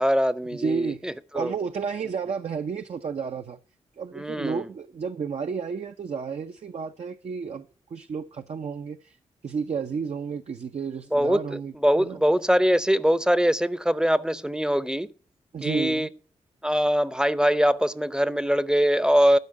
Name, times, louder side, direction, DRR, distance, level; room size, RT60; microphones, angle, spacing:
voice 1, 0.0-1.5 4.1-4.7 11.1-15.1 15.6-16.1 16.6-19.4, equal, 5° right, 0.7 m, -23 dB
voice 2, 0.5-3.6 4.0-9.2 9.4-12.2 15.5-16.1, right 6 dB, 60° right, 0.7 m, -32 dB
12.0 x 5.1 x 7.6 m
supercardioid pair, 50°, 13 cm